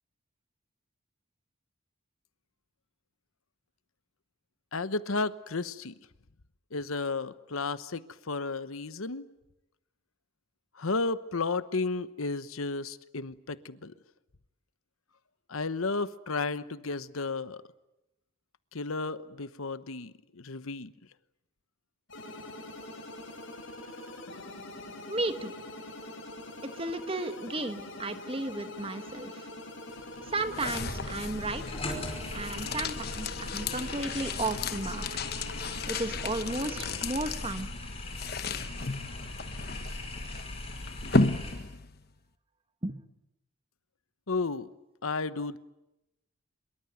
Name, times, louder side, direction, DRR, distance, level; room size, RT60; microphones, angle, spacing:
voice 1, 4.7-5.9 6.7-9.3 10.7-13.9 15.5-17.6 18.7-20.9 44.3-44.7 45.0-45.6, left 3 dB, 90° left, 1.0 m, -33 dB
sound 1, 22.1-37.0, left 1 dB, 65° left, 4.6 m, -44 dB
voice 2, 25.1-25.5 26.7-29.5 30.3-31.8 32.3-35.0 35.9-37.7 42.8-43.0, right 2 dB, 25° right, 1.4 m, -34 dB
sound 2, 29.9-42.1, left 3 dB, 50° left, 1.1 m, -34 dB
sound 3, 30.7-41.5, left 1 dB, 25° left, 5.3 m, -40 dB
25.0 x 22.5 x 9.3 m
head